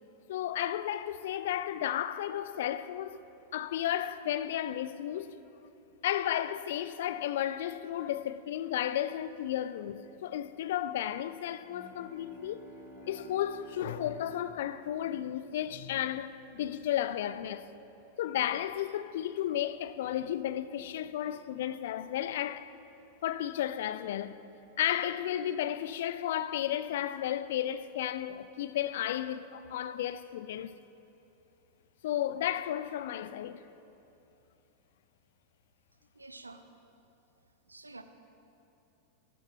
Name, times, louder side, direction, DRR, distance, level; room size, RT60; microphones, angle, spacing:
voice 1, 0.3-3.2 3.5-5.4 6.0-12.6 13.1-17.7 18.2-22.7 23.2-24.4 24.8-30.7 32.0-33.7, left 11 dB, 55° left, 0.3 m, -33 dB
sound 1, 11.6-15.7, right 1 dB, 5° left, 2.4 m, -52 dB
voice 2, 36.2-36.6 37.7-38.0, right 2 dB, 80° right, 0.6 m, -48 dB
14.5 x 13.0 x 3.0 m
figure-of-eight pair, 90°, 0 cm